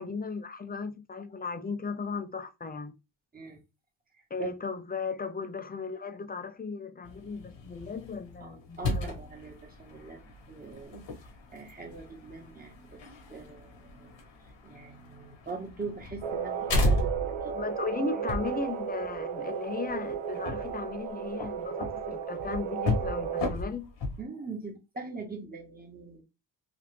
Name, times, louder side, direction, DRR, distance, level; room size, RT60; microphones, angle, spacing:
voice 1, 0.0-3.0 4.3-9.2 17.5-23.9, left 4 dB, 20° left, 0.4 m, -36 dB
sound 1, 7.0-24.2, left 1 dB, 75° left, 1.2 m, -35 dB
voice 2, 8.4-10.2 10.5-11.0 11.5-13.0 13.3-14.1 14.6-17.6 24.2-26.2, right 4 dB, 20° right, 1.2 m, -42 dB
sound 2, 16.2-23.5, right 7 dB, 85° right, 0.7 m, -34 dB
3.0 x 2.5 x 3.2 m
cardioid pair, 85°, 45 cm